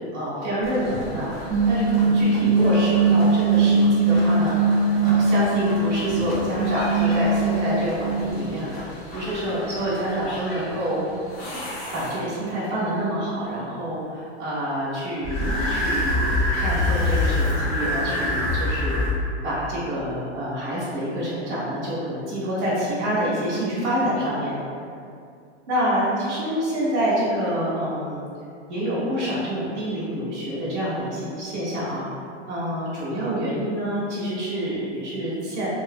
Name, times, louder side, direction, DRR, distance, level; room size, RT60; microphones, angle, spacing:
voice 1, 0.1-1.3 1.6-4.7 5.0-11.0 11.9-24.6 25.7-28.2 28.7-32.0 32.5-35.7, equal, 15° right, -12 dB, 0.5 m, -27 dB
sound 1, 0.6-12.5 15.2-19.1, left 1 dB, 45° left, 0.7 m, -29 dB
sound 2, 1.5-8.3, right 3 dB, 65° left, 1.1 m, -20 dB
2.5 x 2.3 x 2.5 m, 2.3 s
supercardioid pair, 175°, 34 cm